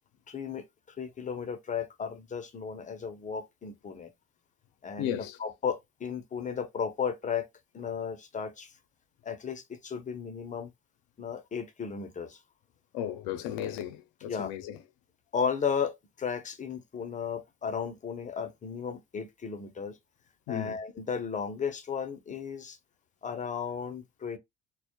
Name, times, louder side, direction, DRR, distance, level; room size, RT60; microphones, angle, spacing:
voice 1, 0.3-0.6 1.0-4.1 4.8-7.5 7.7-8.7 9.3-10.7 11.2-12.4 14.3-14.5 15.3-19.9 20.5-22.8 23.2-24.4, left 6 dB, 25° left, 0.5 m, -34 dB
voice 2, 5.0-5.4 12.9-14.8 20.5-20.8, left 11 dB, 80° left, 0.5 m, -35 dB
2.1 x 2.0 x 2.8 m
supercardioid pair, 75°, 32 cm